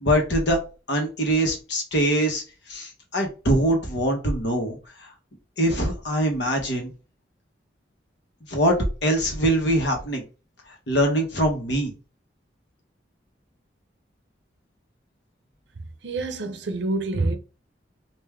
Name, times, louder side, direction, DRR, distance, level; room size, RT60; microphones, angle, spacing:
voice 1, 0.0-0.6 0.9-2.4 2.7-5.1 5.6-6.9 8.5-10.2 10.9-11.9, right 1 dB, 70° left, 1.1 m, -23 dB
voice 2, 16.0-17.4, right 2 dB, 70° right, 0.6 m, -26 dB
3.5 x 2.5 x 3.3 m
head